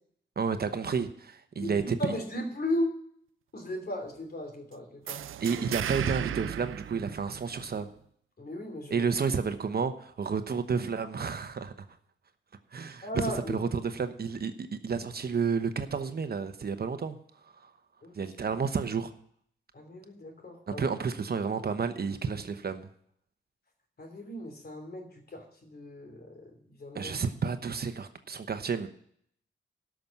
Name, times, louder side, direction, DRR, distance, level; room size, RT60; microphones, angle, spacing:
voice 1, 0.4-2.2 5.4-7.9 8.9-11.9 12.7-17.2 17.4-17.7 18.2-19.1 20.7-22.9 26.9-28.9, right 5 dB, 50° right, 1.0 m, -31 dB
voice 2, 1.5-3.0 3.5-5.2 8.4-9.1 13.0-13.6 18.0-18.2 19.7-20.9 24.0-26.5 26.8-27.1, left 1 dB, 50° left, 3.0 m, -36 dB
sound 1, 5.1-7.8, right 10 dB, 85° right, 0.4 m, -35 dB
13.0 x 6.1 x 7.0 m
cardioid pair, 85°, 20 cm